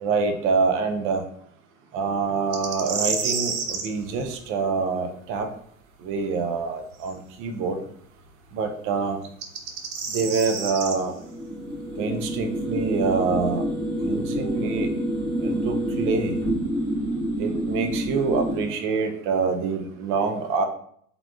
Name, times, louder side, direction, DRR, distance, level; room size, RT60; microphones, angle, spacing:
voice 1, 0.0-1.2 1.9-5.5 6.0-7.8 8.5-9.2 10.1-11.1 12.0-13.6 14.0-14.9 15.4-16.3 17.4-20.6, right 4 dB, 30° right, 6 dB, 0.5 m, -26 dB
sound 1, 2.5-3.9 7.0-7.1 9.2-11.0, right 5 dB, 75° right, 0.6 m, -29 dB
sound 2, 11.1-18.7, equal, 5° left, 1.0 m, -27 dB
3.5 x 3.4 x 2.3 m, 0.65 s
figure-of-eight pair, 80°, 43 cm